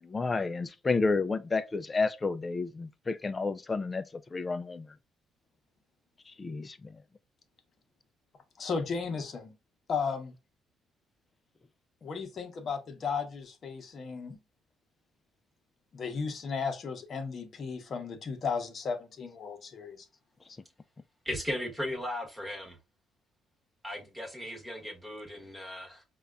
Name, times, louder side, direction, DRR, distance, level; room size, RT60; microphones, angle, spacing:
voice 1, 0.0-4.0 4.3-4.9 6.3-7.0, left 3 dB, 20° left, 0.3 m, -31 dB
voice 2, 8.6-9.5 9.9-10.3 12.0-14.4 15.9-20.1, left 5 dB, 40° left, 0.8 m, -35 dB
voice 3, 21.2-22.8 23.8-26.0, left 1 dB, 5° right, 1.1 m, -37 dB
5.3 x 2.2 x 2.3 m
cardioid pair, 150°, 0 cm